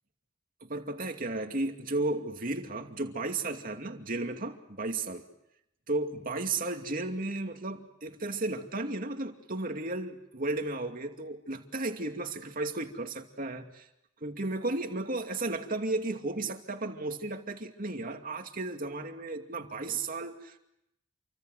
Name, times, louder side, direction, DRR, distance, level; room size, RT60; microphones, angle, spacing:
voice 1, 0.6-5.2 5.9-13.9 14.2-20.6, right 2 dB, 45° right, 5 dB, 2.5 m, -34 dB
28.5 x 24.0 x 8.0 m, 0.81 s
head